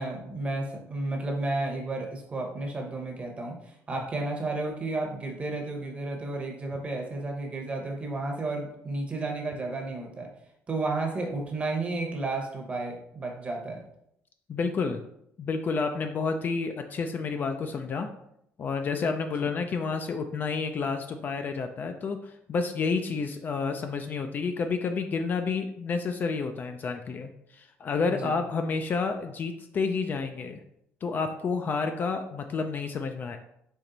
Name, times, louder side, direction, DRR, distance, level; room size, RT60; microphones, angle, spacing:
voice 1, 0.0-3.6 3.9-10.3 10.7-13.8 19.4-19.5 28.1-28.4, right 2 dB, 25° right, 1 dB, 0.9 m, -32 dB
voice 2, 14.5-15.0 15.4-18.1 18.6-30.6 31.0-33.4, left 4 dB, 35° left, 6 dB, 0.3 m, -30 dB
4.4 x 3.1 x 3.8 m, 0.75 s
cardioid pair, 150°, 5 cm